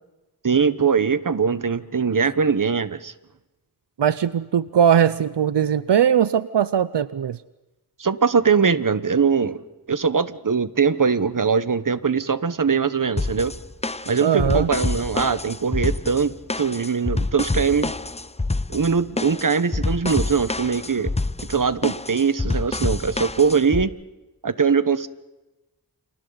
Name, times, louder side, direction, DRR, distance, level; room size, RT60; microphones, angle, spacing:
voice 1, 0.4-3.1 8.0-9.6 9.9-13.5 14.1-17.9 18.7-21.1 21.5-23.9 24.4-25.1, right 5 dB, 50° right, 13 dB, 1.1 m, -21 dB
voice 2, 4.0-7.4 14.2-14.7, right 8 dB, 85° right, 15 dB, 0.7 m, -20 dB
sound 1, 13.2-23.8, left 2 dB, 15° left, 0.6 m, -27 dB
30.0 x 27.5 x 4.0 m, 1.1 s
wide cardioid pair, 75°, 41 cm